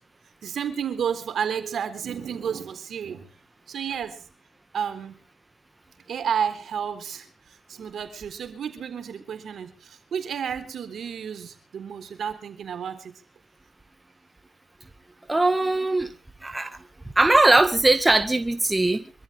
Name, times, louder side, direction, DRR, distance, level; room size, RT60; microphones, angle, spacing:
voice 1, 0.4-3.3 3.7-4.2 4.7-5.1 6.1-13.1, right 7 dB, 65° right, 8 dB, 3.9 m, -31 dB
voice 2, 15.3-16.1 16.4-16.8 17.2-19.1, right 2 dB, 15° right, 8 dB, 1.8 m, -20 dB
25.5 x 14.0 x 3.6 m, 0.35 s
cardioid pair, 70°, 0 cm